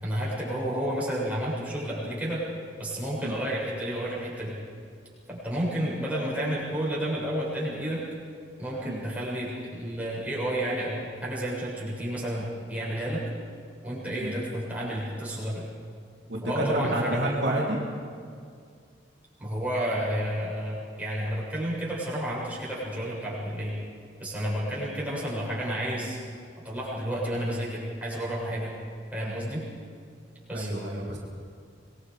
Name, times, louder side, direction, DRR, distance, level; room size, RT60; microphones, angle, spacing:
voice 1, 0.0-2.5 2.8-4.6 5.3-8.0 8.6-13.2 13.8-15.7 16.4-17.2 19.4-23.8 24.2-26.2 26.6-28.7 29.1-29.6 30.5-30.7, right 1 dB, 10° right, -7 dB, 7.2 m, -31 dB
voice 2, 16.3-17.8 30.5-31.2, right 1 dB, 65° right, -4 dB, 3.3 m, -28 dB
25.5 x 21.5 x 5.2 m, 2.2 s
head